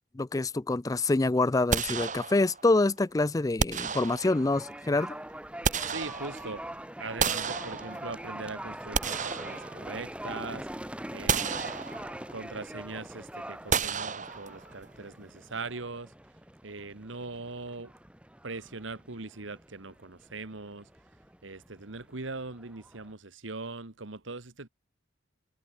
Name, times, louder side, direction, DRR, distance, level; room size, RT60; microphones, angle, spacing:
voice 1, 0.1-5.2, left 2 dB, 20° left, 0.4 m, -26 dB
sound 1, 1.7-2.7 3.6-4.6 5.3-6.6 7.2-8.3 8.7-10.2 10.6-10.7 11.3-12.3 13.7-14.8, right 5 dB, 40° right, 2.8 m, -32 dB
sound 2, 4.2-23.1, right 1 dB, 5° right, 2.2 m, -43 dB
voice 2, 5.8-6.6 7.0-10.7 11.1-11.7 12.3-16.1 16.6-17.9 18.4-20.9 21.4-24.7, right 3 dB, 80° right, 1.7 m, -40 dB
head